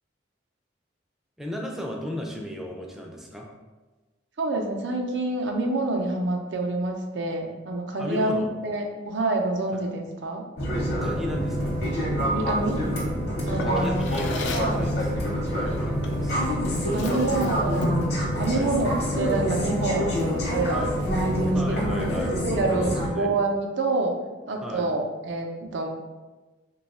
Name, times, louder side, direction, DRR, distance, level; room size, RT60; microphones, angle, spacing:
voice 1, 1.4-3.5 8.0-8.5 9.7-9.8 11.0-11.7 13.6-15.3 15.5-16.5 16.8-17.7 18.5-18.7 20.7-20.9 21.5-22.5 22.8-23.3 24.6-24.9, left 1 dB, ahead, 0 dB, 0.4 m, -35 dB
voice 2, 4.4-10.5 12.2-12.8 13.5-14.0 14.5-14.9 16.9-17.9 18.4-20.9 21.2-21.8 22.1-24.2 24.5-25.9, right 2 dB, 75° right, 2 dB, 0.5 m, -27 dB
sound 1, 10.6-23.1, equal, 60° left, 0.9 m, -26 dB
Drawer open or close, 13.6-14.8 16.0-16.3 16.7-18.1, left 2 dB, 75° left, 0.4 m, -33 dB
3.1 x 2.3 x 4.1 m, 1.2 s
head